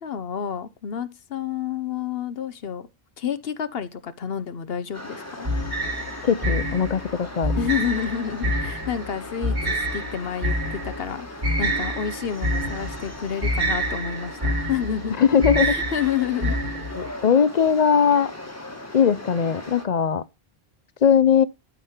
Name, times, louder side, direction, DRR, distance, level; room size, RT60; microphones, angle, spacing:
voice 1, 0.0-2.9 3.2-5.5 7.5-15.2 15.6-16.6, left 8 dB, 70° left, 1.0 m, -29 dB
sound 1, 4.9-19.9, left 1 dB, 15° left, 1.4 m, -39 dB
sound 2, 5.5-17.1, equal, 30° right, 1.4 m, -27 dB
voice 2, 6.2-7.5 15.2-15.8 17.0-18.3 18.9-20.2 21.0-21.4, left 7 dB, 50° left, 0.6 m, -19 dB
Explosion, 12.6-14.2, right 3 dB, 70° right, 5.2 m, -46 dB
12.0 x 5.4 x 4.3 m
omnidirectional pair, 1.1 m